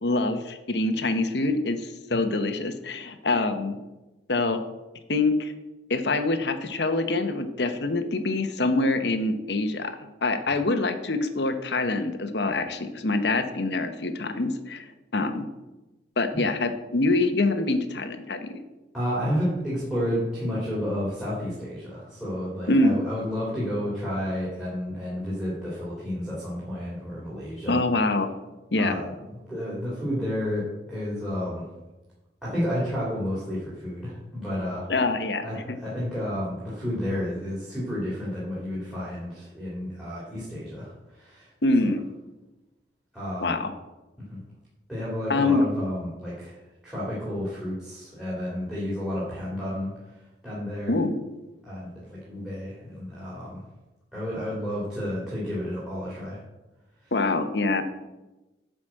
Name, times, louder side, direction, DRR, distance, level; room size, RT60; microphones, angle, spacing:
voice 1, 0.0-3.8 4.3-4.6 5.1-5.5 5.9-9.9 10.2-15.5 16.2-18.6 22.7-23.1 27.7-28.3 28.7-29.0 34.9-35.8 41.6-42.0 43.4-43.7 45.3-45.6 50.9-51.2 57.1-57.8, left 2 dB, 65° left, 8 dB, 1.0 m, -25 dB
voice 2, 18.9-27.8 28.8-31.7 32.4-34.9 35.4-41.5 41.8-41.9 43.1-43.6 44.3-44.4 44.9-46.6 46.8-49.9 50.4-50.9 51.6-53.6 54.1-56.4 57.0-57.1, equal, 5° right, -7 dB, 2.9 m, -31 dB
9.9 x 5.1 x 7.5 m, 1.0 s
head